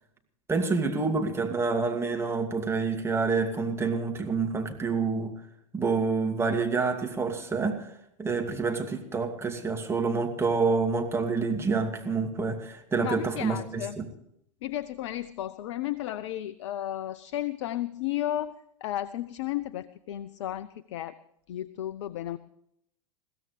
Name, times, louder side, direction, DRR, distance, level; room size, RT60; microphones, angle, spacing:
voice 1, 0.5-5.3 5.7-7.9 8.2-13.6 14.0-14.1, right 4 dB, 15° right, 4 dB, 2.5 m, -27 dB
voice 2, 13.0-14.0 14.6-21.2 21.5-22.4, left 13 dB, 60° left, 16 dB, 0.6 m, -33 dB
21.5 x 16.0 x 3.3 m, 0.73 s
figure-of-eight pair, 95°, 17 cm